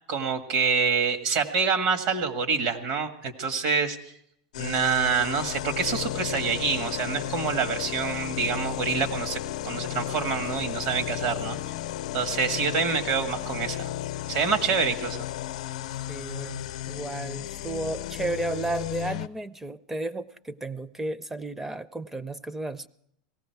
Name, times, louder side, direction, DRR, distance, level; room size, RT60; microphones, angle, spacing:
voice 1, 0.1-4.0 4.6-11.7 12.1-13.9 14.3-15.2, right 5 dB, 60° right, 6 dB, 1.7 m, -26 dB
sound 1, 4.5-19.3, left 14 dB, 80° left, 0.5 m, -34 dB
voice 2, 16.1-22.9, right 2 dB, 10° right, 15 dB, 0.5 m, -33 dB
17.5 x 15.5 x 4.7 m, 0.73 s
supercardioid pair, 130°, 4 cm